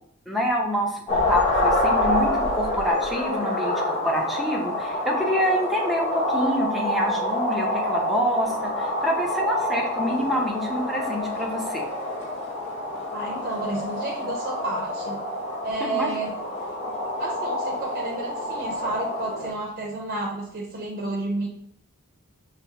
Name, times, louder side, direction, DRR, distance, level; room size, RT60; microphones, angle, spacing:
voice 1, 0.3-11.8 15.8-16.1, equal, ahead, -2 dB, 0.6 m, -27 dB
sound 1, 1.1-19.5, left 1 dB, 30° left, 1.0 m, -27 dB
voice 2, 13.1-15.2 15.6-16.3 17.2-21.5, right 2 dB, 45° right, -2 dB, 0.7 m, -31 dB
5.9 x 2.1 x 2.8 m, 0.67 s
head